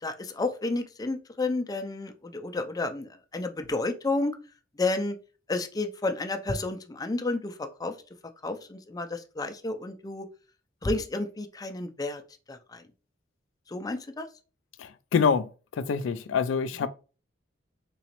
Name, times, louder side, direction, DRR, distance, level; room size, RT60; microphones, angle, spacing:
voice 1, 0.0-4.3 4.8-5.2 5.5-7.9 8.4-10.3 10.8-12.2 12.5-12.8 13.7-14.3, left 2 dB, 20° left, 0.4 m, -31 dB
voice 2, 14.8-16.9, left 6 dB, 85° left, 0.3 m, -26 dB
3.8 x 3.0 x 2.9 m
head